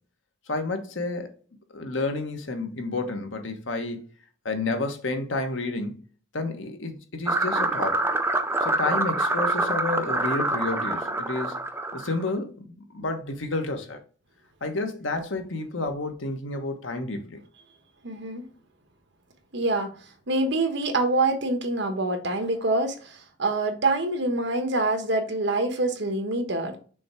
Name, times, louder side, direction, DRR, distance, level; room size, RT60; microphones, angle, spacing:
voice 1, 0.5-1.3 1.7-4.0 4.4-6.0 6.3-8.0 8.6-11.6 11.9-14.0 14.6-17.4, left 2 dB, 85° left, 1.3 m, -30 dB
sound 1, 7.3-12.3, right 2 dB, 15° right, 0.6 m, -26 dB
voice 2, 18.0-18.4 19.5-19.9 20.3-26.8, right 2 dB, 65° right, 1.3 m, -25 dB
6.2 x 3.5 x 4.4 m
head